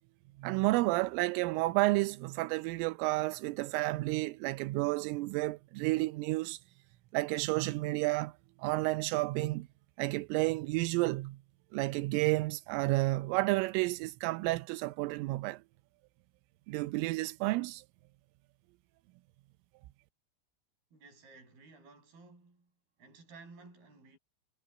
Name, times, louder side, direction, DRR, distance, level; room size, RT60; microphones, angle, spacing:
voice 1, 0.4-6.6 7.1-8.3 8.6-9.7 10.0-11.4 11.7-15.6 16.7-17.8, right 21 dB, 85° right, 3.2 m, -31 dB
voice 2, 20.9-22.7 23.0-24.2, right 3 dB, 50° right, 7.9 m, -55 dB
omnidirectional pair, 5.8 m